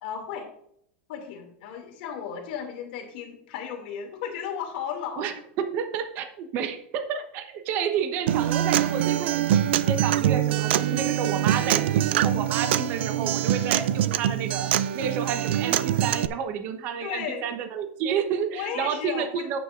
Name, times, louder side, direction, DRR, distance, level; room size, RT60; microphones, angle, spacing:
voice 1, 0.0-0.5 1.1-5.2 17.0-17.5 18.5-19.5, left 7 dB, 50° left, 3 dB, 2.4 m, -34 dB
voice 2, 5.2-19.6, right 7 dB, 30° right, 8 dB, 1.0 m, -30 dB
Acoustic guitar, 8.3-16.3, right 11 dB, 65° right, 0.5 m, -24 dB
11.0 x 9.3 x 2.5 m, 0.68 s
supercardioid pair, 180°, 7 cm